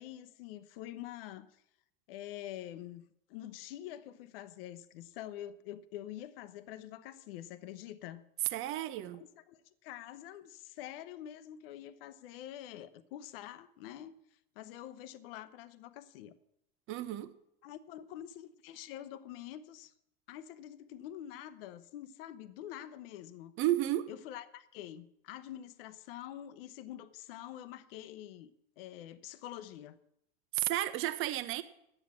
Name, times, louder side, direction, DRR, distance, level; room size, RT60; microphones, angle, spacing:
voice 1, 0.0-1.6 2.1-3.0 3.3-8.2 9.1-14.1 14.6-16.3 17.6-19.9 20.3-23.5 24.1-30.0, left 12 dB, 70° left, 0.9 m, -46 dB
voice 2, 8.5-9.2 16.9-17.3 23.6-24.1 30.5-31.6, right 14 dB, 45° right, 0.9 m, -32 dB
10.0 x 7.7 x 8.4 m
supercardioid pair, 110°, 29 cm